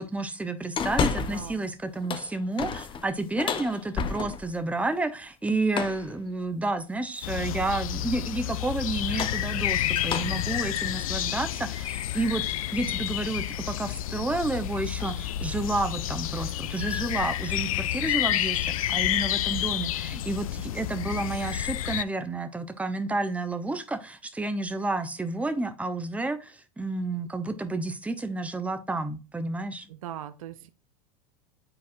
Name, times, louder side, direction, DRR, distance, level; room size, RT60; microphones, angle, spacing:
voice 1, 0.0-12.4 12.7-29.9, right 2 dB, 5° right, 0.9 m, -30 dB
sound 1, 0.8-1.6 1.9-4.6 5.7-6.1 7.2-7.6 8.9-12.3 12.8-12.9 14.4-14.7 15.0-15.2 15.6-15.8 16.1-17.2, left 6 dB, 30° left, 0.7 m, -33 dB
voice 2, 1.2-1.7 29.9-30.7, right 11 dB, 75° right, 0.6 m, -40 dB
sound 2, 7.2-22.0, left 13 dB, 80° left, 0.4 m, -30 dB
9.8 x 4.1 x 2.6 m
hypercardioid pair, 85°, 18 cm